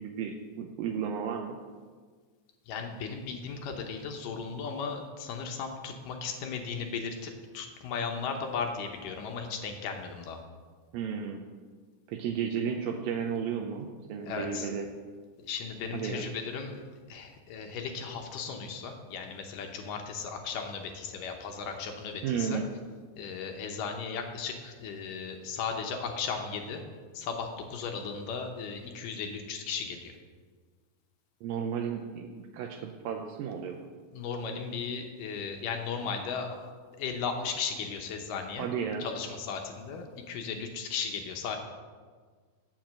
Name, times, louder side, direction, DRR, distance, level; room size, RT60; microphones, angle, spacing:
voice 1, 0.0-1.6 10.9-11.4 12.1-14.9 15.9-16.3 22.2-22.6 31.4-33.8 38.6-39.1, right 7 dB, 80° right, 2 dB, 2.3 m, -33 dB
voice 2, 2.7-10.4 14.2-14.7 15.4-16.8 17.1-22.6 23.2-26.8 27.1-30.1 34.1-36.7 37.0-38.7 39.0-41.6, left 5 dB, 75° left, 3 dB, 2.3 m, -36 dB
9.1 x 7.4 x 7.5 m, 1.5 s
omnidirectional pair, 4.2 m